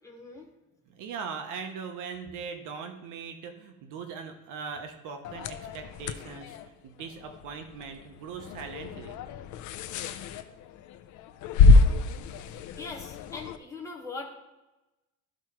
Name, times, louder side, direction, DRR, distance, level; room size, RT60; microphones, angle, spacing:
voice 1, 0.0-0.5 12.3-14.3, left 3 dB, 10° left, -1 dB, 1.2 m, -41 dB
voice 2, 1.0-9.2, right 6 dB, 65° right, 6 dB, 0.8 m, -40 dB
sound 1, 5.2-13.6, left 3 dB, 60° left, 0.6 m, -26 dB
13.0 x 4.6 x 3.0 m, 1.0 s
cardioid pair, 170°, 34 cm